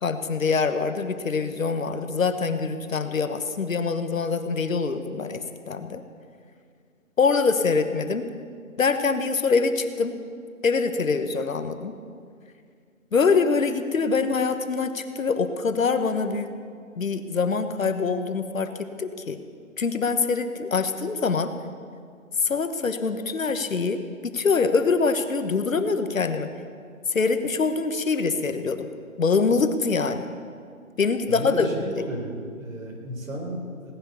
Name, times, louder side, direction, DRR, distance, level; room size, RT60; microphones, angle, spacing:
voice 1, 0.0-6.0 7.2-8.3 8.8-10.2 10.6-11.9 13.1-16.5 17.0-19.4 19.8-21.5 22.4-26.5 27.1-28.9 29.2-30.3 31.0-31.7 32.0-32.1, left 4 dB, 70° left, 9 dB, 1.3 m, -24 dB
voice 2, 31.3-33.9, right 1 dB, 70° right, 0 dB, 4.7 m, -33 dB
18.0 x 10.5 x 6.9 m, 2.1 s
hypercardioid pair, 175°, 42 cm